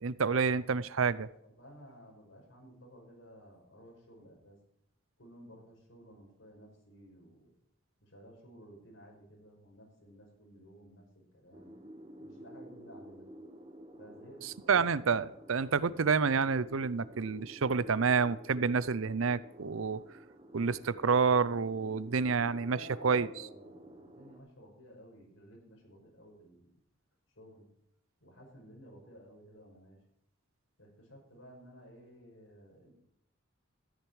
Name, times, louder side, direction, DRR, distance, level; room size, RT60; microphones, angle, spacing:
voice 1, 0.0-1.3 14.7-20.0 20.5-22.8 23.0-23.3, right 5 dB, 80° right, 17 dB, 0.6 m, -28 dB
voice 2, 1.4-4.6 5.2-7.5 8.0-11.8 12.2-13.3 14.0-14.8 22.2-26.7 27.4-27.7 28.2-30.0 30.8-32.9, equal, 70° left, 0 dB, 5.9 m, -55 dB
sound 1, 11.5-24.4, right 1 dB, 25° right, 1.3 m, -52 dB
14.0 x 10.5 x 4.8 m, 0.75 s
head